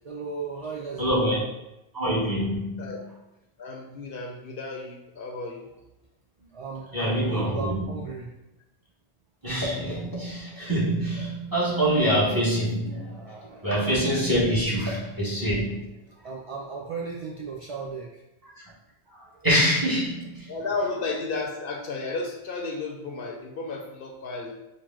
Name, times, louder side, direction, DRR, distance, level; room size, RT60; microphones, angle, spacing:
voice 1, 0.0-1.2 6.5-8.3 13.1-13.7 16.2-18.2, right 4 dB, 65° right, -2 dB, 0.3 m, -36 dB
voice 2, 1.0-1.4 1.9-2.9 6.9-7.8 9.4-13.3 13.6-15.8 19.4-20.5, equal, 20° right, -7 dB, 1.3 m, -25 dB
voice 3, 3.6-5.7 20.5-24.5, left 3 dB, 65° left, 1 dB, 0.7 m, -33 dB
4.6 x 2.1 x 3.6 m, 0.92 s
omnidirectional pair, 1.1 m